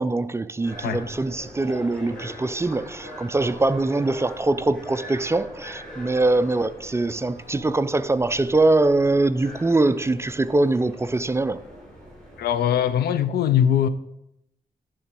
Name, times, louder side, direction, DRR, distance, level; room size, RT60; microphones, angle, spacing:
voice 1, 0.0-11.6, right 2 dB, 15° right, 0.3 m, -23 dB
sound 1, 0.6-12.9, equal, 5° left, 2.6 m, -41 dB
voice 2, 12.4-13.9, left 9 dB, 90° left, 0.5 m, -21 dB
11.0 x 3.8 x 4.4 m
cardioid pair, 75°, 16 cm